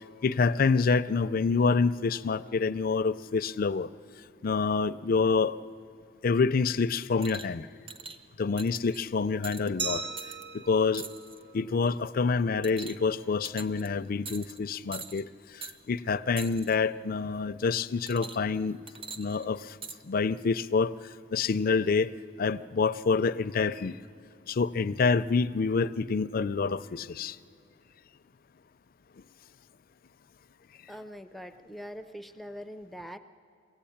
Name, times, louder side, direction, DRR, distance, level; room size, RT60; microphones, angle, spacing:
voice 1, 0.2-3.9 4.4-5.6 6.2-7.7 8.4-10.0 10.5-11.1 11.5-15.3 15.5-18.8 19.2-19.8 20.0-20.9 21.3-22.1 22.4-24.0 24.5-27.4, left 4 dB, 50° left, 13 dB, 0.4 m, -27 dB
sound 1, 7.2-7.5 7.9-8.2 8.6-9.0 9.4-9.7 10.2-10.4 10.9-11.4 11.8-12.1 12.6-13.1 13.4-13.9 14.2-14.6 14.9-15.2 15.6-15.8 16.4-16.7 18.1-18.6 18.9-20.0 20.8-20.9, right 5 dB, 30° right, 0.9 m, -43 dB
Glass, 9.8-12.5, right 4 dB, 65° right, 1.7 m, -39 dB
voice 2, 30.9-33.2, equal, ahead, 8 dB, 0.5 m, -43 dB
22.5 x 17.0 x 8.7 m, 2.4 s
head